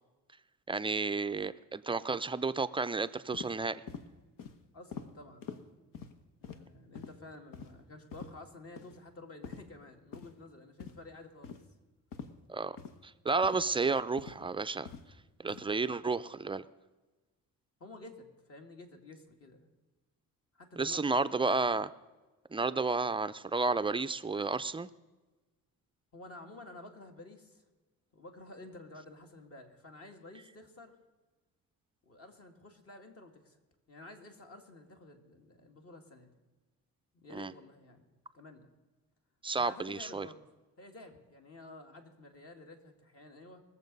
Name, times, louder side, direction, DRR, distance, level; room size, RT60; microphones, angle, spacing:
voice 1, 0.7-3.8 12.5-12.8 13.0-14.9 15.4-16.7 20.8-21.9 22.5-24.9 37.3-37.5 39.4-40.3, right 3 dB, 15° right, 12 dB, 0.4 m, -31 dB
sound 1, 3.3-3.5 3.9-4.1 4.4-4.6 4.9-5.1 5.4-5.6 5.9-6.1 6.4-6.6 6.9-7.1 7.5-7.7 8.1-8.3 8.8-9.0 9.4-9.6 10.1-10.3 10.8-11.0 11.4-11.6 12.1-12.3 12.8-12.9 13.4-13.6 14.2-14.4 14.9-15.0 15.5-15.6, left 6 dB, 75° left, 1.2 m, -44 dB
voice 2, 4.7-5.7 6.4-11.6 15.6-16.0 17.8-19.7 20.5-21.2 26.1-27.6 28.1-30.9 32.0-33.6 33.9-36.3 37.1-38.7 39.5-40.5 40.8-43.6, left 2 dB, 45° left, 4 dB, 2.2 m, -51 dB
21.0 x 7.4 x 5.4 m, 1.2 s
cardioid pair, 105°, 33 cm